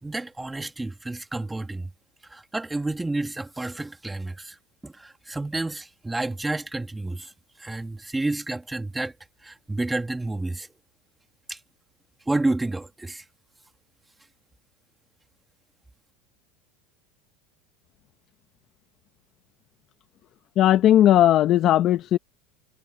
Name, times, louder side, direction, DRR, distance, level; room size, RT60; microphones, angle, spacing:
voice 1, 0.0-1.9 2.2-4.6 4.8-7.3 7.6-9.1 9.4-10.7 11.5-11.6 12.3-13.2, right 2 dB, 10° right, 2.5 m, -30 dB
voice 2, 20.6-22.2, left 12 dB, 45° left, 1.3 m, -17 dB
supercardioid pair, 120°, 0 cm